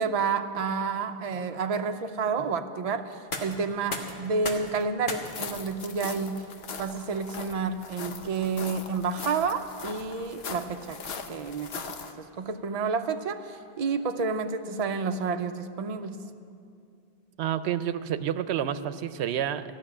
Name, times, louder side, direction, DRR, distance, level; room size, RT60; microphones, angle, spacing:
voice 1, 0.0-6.5 6.8-11.0 11.3-16.2, right 5 dB, 45° right, 7 dB, 0.6 m, -30 dB
sound 1, 3.1-14.9, left 2 dB, 55° left, 1.4 m, -44 dB
sound 2, 5.2-12.1, left 5 dB, 70° left, 1.0 m, -40 dB
voice 2, 17.4-19.6, right 10 dB, 85° right, 13 dB, 0.8 m, -29 dB
15.0 x 6.5 x 10.0 m, 2.4 s
omnidirectional pair, 1.1 m